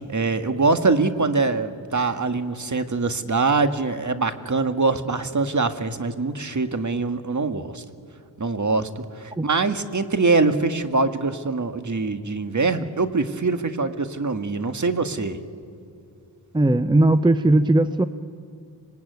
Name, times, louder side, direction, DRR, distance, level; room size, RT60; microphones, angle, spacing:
voice 1, 0.1-7.8 8.4-15.4, right 3 dB, 40° right, 8 dB, 1.8 m, -23 dB
voice 2, 16.5-18.0, right 2 dB, 10° right, 11 dB, 0.7 m, -18 dB
25.5 x 20.5 x 9.5 m, 2.6 s
cardioid pair, 60°, 46 cm